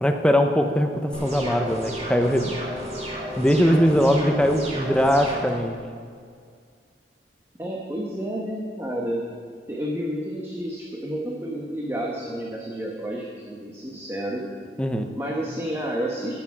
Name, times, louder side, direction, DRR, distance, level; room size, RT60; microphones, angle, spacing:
voice 1, 0.0-2.6 3.4-5.8 14.8-15.1, equal, 5° left, 5 dB, 0.6 m, -21 dB
sound 1, 1.1-5.5, equal, 35° right, 2.6 m, -33 dB
voice 2, 7.6-9.2 9.7-14.4 15.1-16.3, right 1 dB, 15° right, -2 dB, 1.0 m, -30 dB
14.5 x 6.8 x 6.0 m, 2.1 s
head